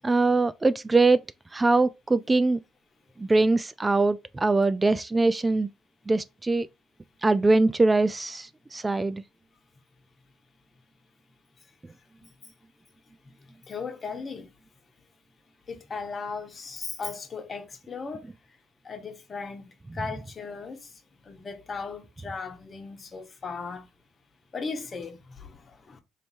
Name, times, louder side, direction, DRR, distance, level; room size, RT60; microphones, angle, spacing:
voice 1, 0.0-1.2 1.5-2.6 3.2-5.7 6.1-6.7 7.2-9.2, right 3 dB, 20° right, 0.3 m, -22 dB
voice 2, 13.7-14.5 15.7-18.3 18.8-20.9 21.2-23.9 24.5-26.0, left 4 dB, 40° left, 1.0 m, -37 dB
3.2 x 2.7 x 4.4 m
hypercardioid pair, 60°, 0 cm